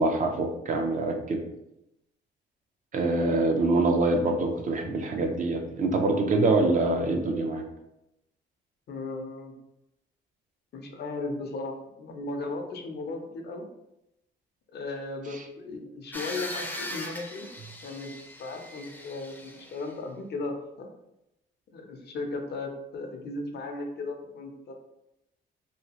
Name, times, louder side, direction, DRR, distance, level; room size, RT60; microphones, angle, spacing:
voice 1, 0.0-1.4 2.9-7.6, right 2 dB, 40° right, 3 dB, 0.4 m, -25 dB
voice 2, 8.9-9.5 10.7-13.7 14.7-17.5 17.8-20.9 21.7-24.7, left 2 dB, 55° left, 3 dB, 0.6 m, -36 dB
sound 1, 16.1-19.9, left 1 dB, 10° left, 0.5 m, -39 dB
2.8 x 2.2 x 2.9 m, 0.86 s
cardioid pair, 90°, 20 cm